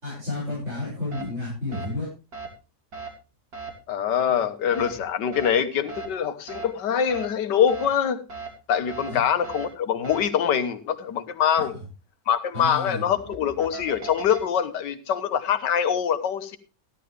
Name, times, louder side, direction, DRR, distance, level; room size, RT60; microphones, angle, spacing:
voice 1, 0.0-2.1 9.1-9.2 12.5-13.1, left 2 dB, 40° right, 7.5 m, -31 dB
sound 1, 1.1-1.2 1.7-1.9 2.3-2.5 2.9-3.1 3.5-3.7 4.7-4.9 5.3-5.5 5.9-6.1 6.5-6.6 7.1-7.2 7.7-7.9 8.3-8.5 8.9-9.1 9.4-9.6 10.0-10.2 13.0-14.4, right 5 dB, 60° right, 3.1 m, -37 dB
voice 2, 3.9-8.2 8.7-11.7 12.3-16.6, left 8 dB, 85° left, 1.7 m, -24 dB
15.5 x 11.5 x 3.4 m
omnidirectional pair, 1.8 m